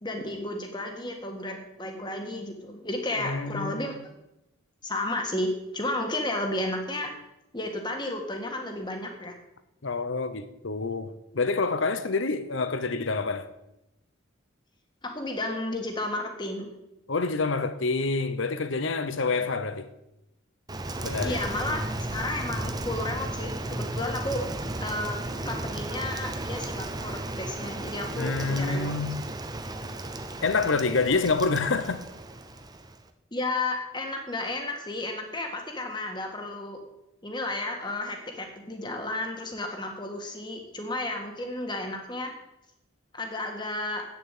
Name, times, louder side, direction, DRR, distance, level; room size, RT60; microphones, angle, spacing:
voice 1, 0.0-3.9 4.8-7.1 7.5-9.4 15.0-16.7 21.2-24.5 24.8-25.2 25.4-28.9 33.3-36.8 37.2-42.3 43.1-44.0, left 2 dB, 20° left, 1.6 m, -32 dB
voice 2, 3.2-4.0 9.8-13.5 17.1-19.9 21.0-21.4 28.2-29.2 30.4-32.0, left 4 dB, 70° left, 0.9 m, -27 dB
Rain, 20.7-33.1, right 2 dB, 20° right, 0.7 m, -34 dB
9.0 x 7.0 x 8.2 m
head